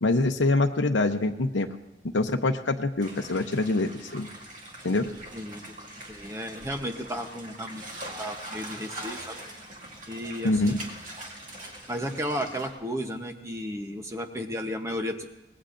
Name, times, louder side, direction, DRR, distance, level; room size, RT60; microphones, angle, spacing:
voice 1, 0.0-1.7 2.1-4.3 4.8-5.1 10.4-10.8, left 2 dB, 80° left, 3 dB, 0.7 m, -25 dB
sound 1, 3.0-12.7, right 1 dB, 45° right, 2.1 m, -42 dB
voice 2, 5.3-7.8 8.2-9.4 10.1-10.8 11.9-15.3, equal, 15° right, 5 dB, 0.8 m, -34 dB
25.0 x 19.5 x 2.6 m, 0.91 s
head